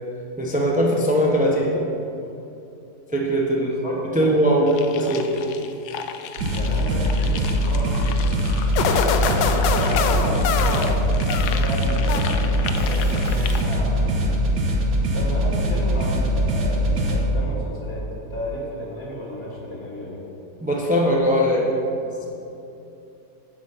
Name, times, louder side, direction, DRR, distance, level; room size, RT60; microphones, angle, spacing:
voice 1, 0.4-1.9 3.1-5.4 20.6-21.7 22.0-22.3, equal, 10° right, -2 dB, 0.3 m, -21 dB
voice 2, 3.6-5.1 6.5-11.0 11.3-14.4 15.1-20.2, equal, 35° left, -4 dB, 2.3 m, -33 dB
sound 1, 4.7-13.8, left 8 dB, 70° left, 1.1 m, -35 dB
sound 2, 6.4-17.2, equal, 85° right, 1.9 m, -22 dB
sound 3, 8.8-11.7 12.1-12.7, left 6 dB, 85° left, 1.3 m, -24 dB
8.0 x 7.8 x 5.6 m, 2.8 s
omnidirectional pair, 1.9 m